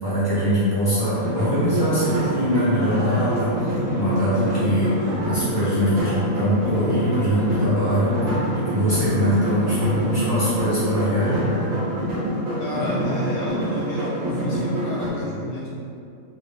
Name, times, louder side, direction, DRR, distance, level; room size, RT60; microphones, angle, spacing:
voice 1, 0.0-8.2 8.5-11.5, equal, 20° right, -12 dB, 0.8 m, -22 dB
sound 1, 1.1-15.1, right 1 dB, 70° right, 1.2 m, -26 dB
voice 2, 5.7-6.2 12.6-15.7, left 1 dB, 65° left, -6 dB, 0.8 m, -32 dB
3.3 x 2.3 x 3.4 m, 2.5 s
omnidirectional pair, 1.4 m